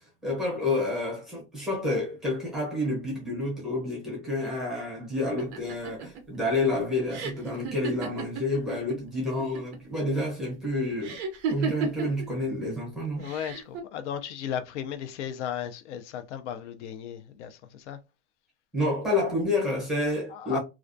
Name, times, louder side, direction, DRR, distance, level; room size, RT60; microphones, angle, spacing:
voice 1, 0.2-11.2 11.5-13.3 18.7-20.6, left 2 dB, ahead, 0.7 m, -29 dB
sound 1, 5.4-9.0 9.2-9.9 11.0-12.2 13.2-13.8, right 5 dB, 30° right, 0.4 m, -33 dB
voice 2, 13.2-18.0 20.3-20.6, left 9 dB, 75° left, 0.5 m, -35 dB
2.4 x 2.2 x 2.5 m
supercardioid pair, 165°, 35 cm